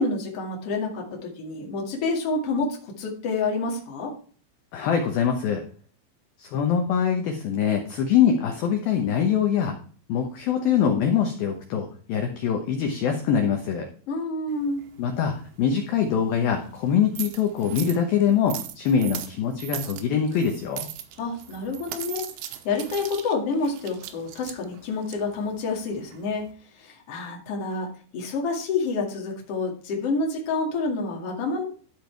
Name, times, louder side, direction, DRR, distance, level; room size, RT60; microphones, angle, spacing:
voice 1, 0.0-4.1 14.1-14.8 21.2-22.2 22.6-26.5 26.8-31.7, left 3 dB, 45° left, 0 dB, 2.3 m, -28 dB
voice 2, 4.7-5.6 6.4-9.8 10.1-13.8 15.0-20.9, left 8 dB, 70° left, 3 dB, 2.3 m, -23 dB
sound 1, 14.5-26.5, right 12 dB, 80° right, 3.1 m, -40 dB
12.5 x 5.2 x 4.5 m, 0.43 s
omnidirectional pair, 5.5 m